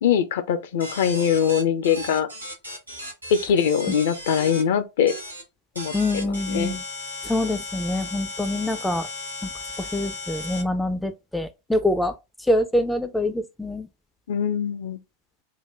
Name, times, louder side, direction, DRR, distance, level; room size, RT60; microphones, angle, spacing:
voice 1, 0.0-2.3 3.3-5.1 5.8-5.9 6.5-6.7 14.3-15.0, left 8 dB, 55° left, 0.5 m, -22 dB
sound 1, 0.8-4.6 5.1-5.4 5.7-10.6, left 2 dB, 85° right, 1.4 m, -36 dB
voice 2, 5.9-6.8 7.2-9.1 9.4-9.5 9.8-12.1 12.5-13.9, left 1 dB, 5° left, 0.3 m, -25 dB
3.8 x 2.1 x 4.3 m
figure-of-eight pair, 90°, 0 cm